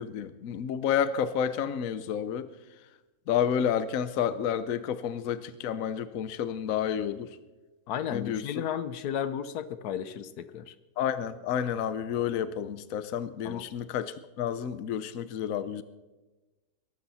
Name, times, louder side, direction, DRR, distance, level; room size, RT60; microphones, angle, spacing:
voice 1, 0.0-2.5 3.3-7.3 8.1-8.4 11.0-15.8, left 8 dB, 65° left, 13 dB, 1.1 m, -30 dB
voice 2, 7.9-10.7 13.4-13.6, left 9 dB, 80° left, 14 dB, 1.3 m, -33 dB
22.5 x 12.0 x 4.2 m, 1.1 s
omnidirectional pair, 1.6 m